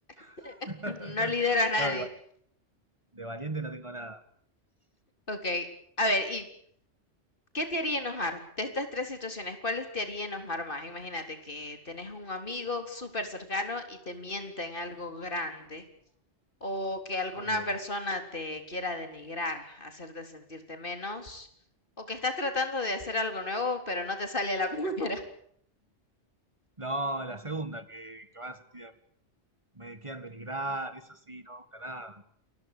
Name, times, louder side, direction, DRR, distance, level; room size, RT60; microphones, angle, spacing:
voice 1, 0.2-2.1 3.1-4.2 17.4-17.7 26.8-28.9 29.7-32.2, right 1 dB, 25° right, 12 dB, 1.9 m, -37 dB
voice 2, 0.9-2.1 5.3-5.7 6.0-6.5 7.5-15.8 16.6-21.5 22.0-25.2, left 2 dB, 45° left, 7 dB, 4.2 m, -32 dB
29.0 x 21.5 x 6.9 m, 0.65 s
omnidirectional pair, 1.2 m